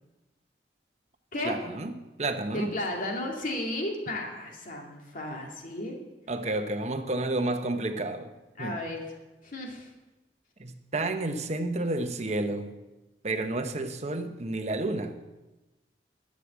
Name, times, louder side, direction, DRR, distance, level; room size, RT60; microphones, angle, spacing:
voice 1, 1.4-2.7 6.3-8.3 8.6-8.8 10.6-12.8 13.2-15.2, right 2 dB, 40° right, 7 dB, 0.9 m, -31 dB
voice 2, 2.5-6.0 8.6-9.2 9.4-9.9, left 1 dB, 50° left, 0 dB, 2.4 m, -34 dB
11.5 x 7.6 x 7.5 m, 1.1 s
head